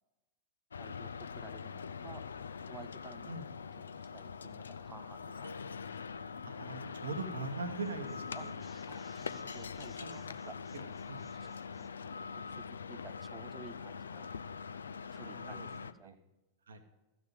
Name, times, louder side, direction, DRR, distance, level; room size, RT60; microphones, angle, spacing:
sound 1, 0.7-15.9, left 5 dB, 70° left, 0.4 m, -43 dB
voice 1, 0.8-2.2 2.7-3.3 4.1-5.8 8.3-8.5 8.9-10.6 11.4-11.5 11.7-14.3 15.1-16.2, right 5 dB, 15° right, 15 dB, 0.5 m, -54 dB
sound 2, 5.4-6.6, equal, 90° right, 0.5 m, -55 dB
voice 2, 6.4-8.5 10.0-10.1 10.7-11.2 15.2-15.7 16.0-16.1 16.7-16.8, right 3 dB, 65° right, 7 dB, 1.0 m, -41 dB
sound 3, 7.2-7.5 7.8-12.0, left 3 dB, 15° left, 0.9 m, -63 dB
14.5 x 6.1 x 5.5 m, 1.1 s
figure-of-eight pair, 90°, 0 cm